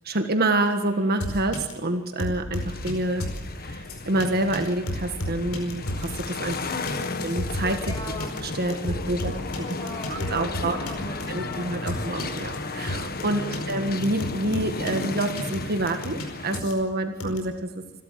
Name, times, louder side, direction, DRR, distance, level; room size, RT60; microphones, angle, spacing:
voice 1, 0.1-3.2 3.6-6.7 7.2-7.8 8.6-9.2 10.1-10.8 11.3-18.0, right 1 dB, 50° right, 7 dB, 1.6 m, -27 dB
sound 1, 1.2-1.7 2.2-2.9 3.2-3.4 3.9-4.3 4.5-4.6 4.9-6.2 6.5-13.2 13.5-13.7 14.0-16.2 16.5-16.7 17.2-17.4, left 1 dB, 80° left, 4.9 m, -33 dB
sound 2, 2.5-16.6, left 3 dB, 45° left, 1.5 m, -34 dB
voice 2, 6.6-7.3 7.9-8.3 9.6-12.1, left 1 dB, 20° left, 4 dB, 5.4 m, -41 dB
27.5 x 13.0 x 7.5 m, 1.1 s
head